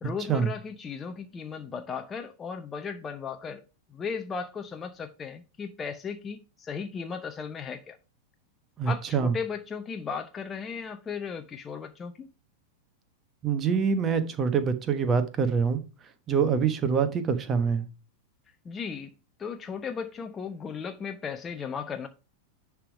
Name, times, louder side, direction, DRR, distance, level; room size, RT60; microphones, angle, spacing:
voice 1, 0.0-3.6 3.9-8.0 8.8-12.3 18.6-19.1 19.4-22.1, left 6 dB, 20° left, 0.6 m, -36 dB
voice 2, 8.8-9.3 13.4-15.8 16.3-17.9, right 6 dB, 25° right, 1.1 m, -25 dB
10.0 x 3.6 x 4.7 m
figure-of-eight pair, 90°, 0 cm